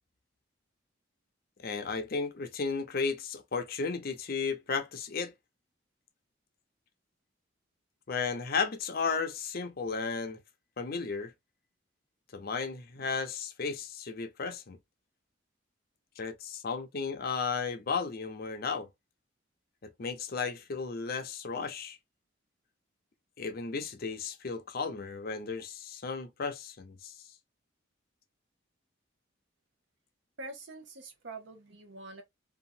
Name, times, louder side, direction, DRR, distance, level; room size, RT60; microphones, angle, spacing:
voice 1, 1.6-5.3 8.1-10.4 10.8-11.3 12.3-14.8 16.2-18.9 20.0-22.0 23.4-27.1, left 5 dB, 50° left, 0.6 m, -34 dB
voice 2, 30.4-32.2, right 2 dB, 65° right, 0.9 m, -45 dB
2.8 x 2.4 x 2.6 m
head